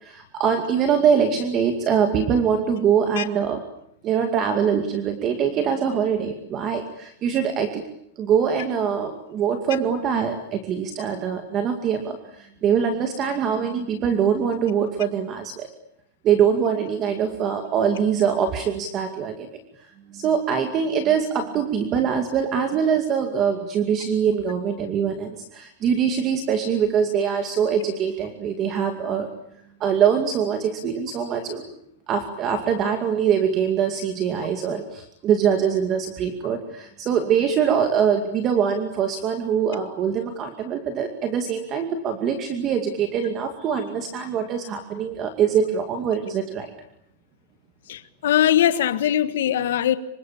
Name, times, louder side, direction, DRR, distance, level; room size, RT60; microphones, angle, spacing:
voice 1, 0.0-3.6 4.0-7.8 8.2-15.7 16.2-19.5 20.1-29.3 29.8-31.6 32.1-46.7, right 7 dB, 25° right, 2.3 m, -23 dB
voice 2, 47.9-50.0, left 11 dB, 80° left, 1.7 m, -21 dB
26.5 x 25.0 x 8.7 m
supercardioid pair, 175°, 0 cm